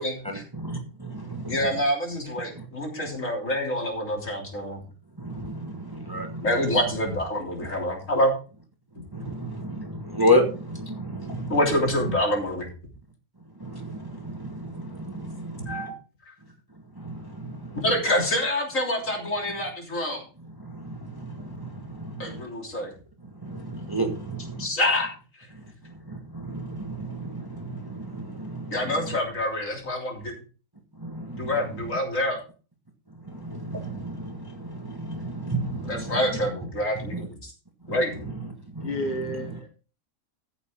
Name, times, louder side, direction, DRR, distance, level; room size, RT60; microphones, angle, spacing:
voice 1, 0.2-1.6 5.2-6.4 9.1-11.5 13.6-15.8 17.0-17.8 20.6-22.4 23.4-24.6 26.1-28.7 31.0-31.5 33.3-36.2 37.1-37.2 38.7-38.9, equal, 15° right, 3 dB, 1.6 m, -31 dB
voice 2, 1.5-4.8 6.4-8.3 11.5-12.7 15.7-15.9 17.8-20.2 22.2-22.9 24.6-25.1 28.7-30.3 31.3-32.4 35.8-37.5 37.9-38.3, left 1 dB, 60° left, 0 dB, 3.7 m, -26 dB
voice 3, 38.8-39.7, left 1 dB, 35° left, 4 dB, 1.2 m, -31 dB
15.0 x 7.1 x 3.7 m, 0.35 s
omnidirectional pair, 1.6 m